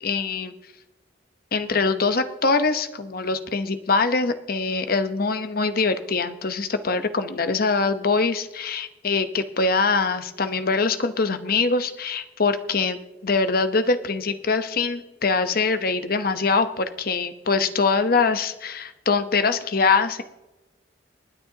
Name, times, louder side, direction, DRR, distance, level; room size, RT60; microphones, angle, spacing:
voice 1, 0.0-0.5 1.5-20.2, left 4 dB, 55° left, 10 dB, 0.9 m, -23 dB
28.0 x 9.9 x 2.8 m, 1.0 s
head